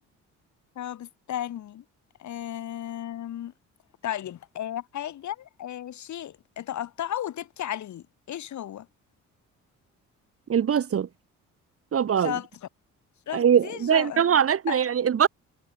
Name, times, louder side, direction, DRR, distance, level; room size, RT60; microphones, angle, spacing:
voice 1, 0.8-1.8 2.2-3.5 4.0-8.9 12.2-12.5 13.3-14.2 14.7-14.8, left 11 dB, 70° left, 3.7 m, -34 dB
voice 2, 10.5-11.1 11.9-12.4 13.3-15.3, right 8 dB, 50° right, 1.8 m, -22 dB
cardioid pair, 90°, 30 cm